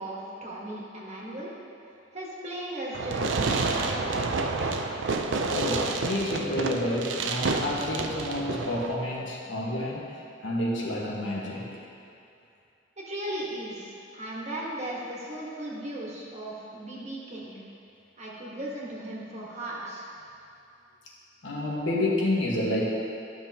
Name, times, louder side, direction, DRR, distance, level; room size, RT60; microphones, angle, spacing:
voice 1, 0.0-1.5 2.1-4.2 13.0-17.6 18.2-20.1, right 1 dB, 40° right, -6 dB, 1.5 m, -37 dB
Fireworks, 2.9-8.9, right 3 dB, 75° right, 0.5 m, -29 dB
voice 2, 5.5-11.8 21.4-22.8, left 1 dB, 75° left, -4 dB, 1.5 m, -29 dB
12.0 x 6.2 x 2.9 m, 2.6 s
head